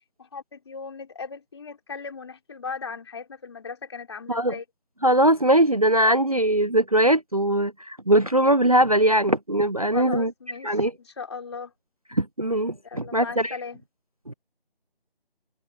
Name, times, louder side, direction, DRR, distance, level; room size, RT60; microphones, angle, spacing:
voice 1, 0.2-4.6 9.9-11.7 12.8-13.8, left 5 dB, 25° left, 3.3 m, -37 dB
voice 2, 5.0-10.3 10.6-10.9 12.1-13.6 14.3-14.4, right 1 dB, 40° right, 0.5 m, -21 dB
figure-of-eight pair, 170°, 31 cm